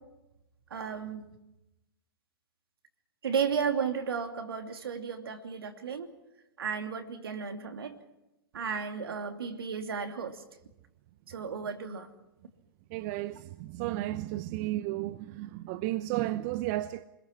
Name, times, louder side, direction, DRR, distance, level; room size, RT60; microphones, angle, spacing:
voice 1, 0.7-1.3 3.2-6.1 6.6-8.0 8.5-10.4 11.3-12.1, right 6 dB, 75° right, 2.9 m, -34 dB
voice 2, 12.9-17.1, right 16 dB, 45° right, 0.8 m, -33 dB
29.5 x 21.5 x 6.0 m
hypercardioid pair, 110°, 12 cm